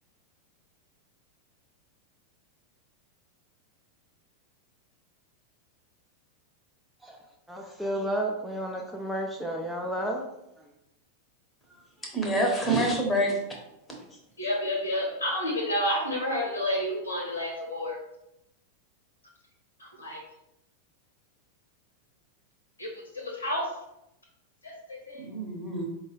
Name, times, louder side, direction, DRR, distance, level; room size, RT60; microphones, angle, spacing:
voice 1, 7.0-10.7, right 1 dB, ahead, 0 dB, 0.4 m, -33 dB
voice 2, 12.0-13.4 25.2-25.9, right 1 dB, 15° left, 0 dB, 0.9 m, -26 dB
voice 3, 14.4-18.0 19.8-20.2 22.8-22.9 23.1-23.6 24.6-25.2, equal, 75° left, -1 dB, 1.1 m, -30 dB
4.5 x 2.3 x 3.2 m, 0.85 s
figure-of-eight pair, 90°, 0 cm